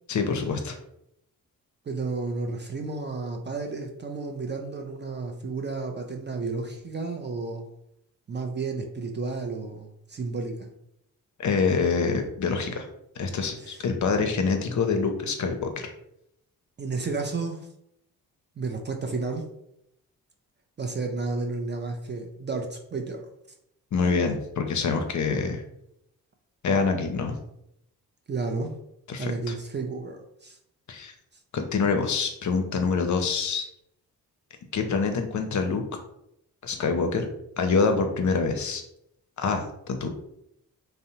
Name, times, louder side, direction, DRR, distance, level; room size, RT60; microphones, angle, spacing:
voice 1, 0.1-0.8 11.4-12.9 13.2-15.9 23.9-25.6 26.6-27.4 29.1-29.5 30.9-31.1 31.5-33.6 34.7-35.8 36.6-37.3 37.6-38.8 39.4-40.1, left 4 dB, 45° left, 5 dB, 0.5 m, -26 dB
voice 2, 1.9-7.7 8.3-10.7 13.6-13.8 16.8-17.7 18.6-19.5 20.8-23.3 28.3-28.8 29.2-30.6, right 3 dB, 30° right, 3 dB, 0.4 m, -32 dB
2.6 x 2.0 x 2.8 m, 0.78 s
supercardioid pair, 45°, 40 cm